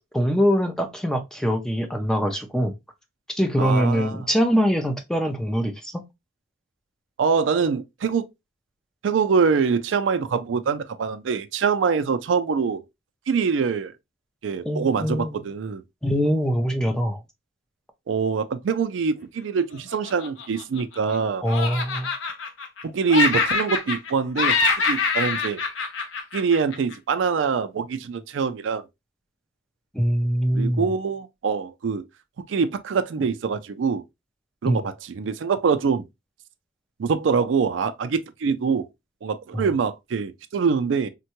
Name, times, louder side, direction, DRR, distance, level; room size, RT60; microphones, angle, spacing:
voice 1, 0.1-2.7 3.3-6.0 14.6-15.4 16.0-17.2 21.4-22.1 29.9-30.9 34.7-34.8 39.5-39.6, equal, 5° left, 0.4 m, -23 dB
voice 2, 3.6-4.2 7.2-8.2 9.0-12.8 13.3-13.9 14.4-15.8 18.1-21.4 22.8-24.6 24.9-25.6 26.3-28.8 30.5-32.0 32.5-34.0 34.6-36.0 37.0-38.8 39.2-41.1, right 5 dB, 75° right, 0.4 m, -24 dB
Laughter, 19.9-21.2 21.5-22.8 23.1-24.1 24.4-26.9, left 4 dB, 85° left, 0.6 m, -24 dB
3.6 x 2.2 x 2.8 m
head